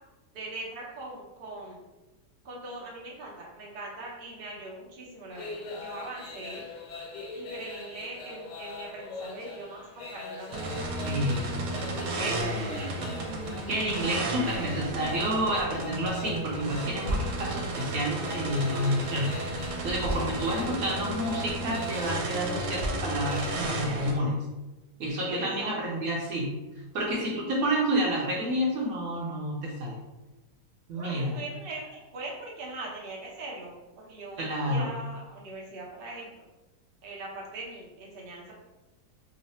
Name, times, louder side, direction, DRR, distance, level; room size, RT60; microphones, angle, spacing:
voice 1, 0.3-1.8 2.4-6.6 7.3-10.7 11.7-13.0 20.1-20.7 25.3-26.1 30.9-36.3 37.0-38.5, right 2 dB, 50° right, -3 dB, 0.7 m, -41 dB
sound 1, 5.3-24.1, left 3 dB, 85° left, 1.3 m, -42 dB
sound 2, 10.5-24.1, right 2 dB, 80° right, 1.2 m, -34 dB
voice 2, 11.0-11.5 12.2-12.3 13.7-24.4 25.0-26.5 26.9-30.0 30.9-31.4 34.4-34.9, equal, 65° right, -3 dB, 1.0 m, -29 dB
sound 3, 17.0-17.4 19.0-19.1 20.0-20.4 21.0-21.1 21.7-21.8 22.8-23.1, equal, 65° left, 0.5 m, -32 dB
3.1 x 2.0 x 4.1 m, 1.1 s
omnidirectional pair, 1.8 m